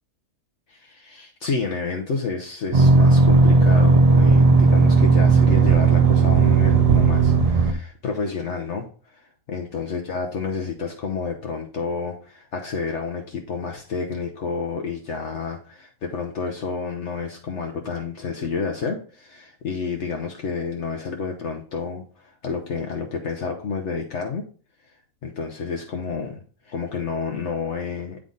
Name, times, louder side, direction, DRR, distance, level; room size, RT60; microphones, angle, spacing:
voice 1, 0.7-24.4 25.2-28.2, left 5 dB, 65° left, 2 dB, 1.1 m, -30 dB
sound 1, 2.7-7.7, right 4 dB, 45° right, 0.5 m, -15 dB
8.7 x 3.6 x 3.8 m, 0.40 s
omnidirectional pair, 1.4 m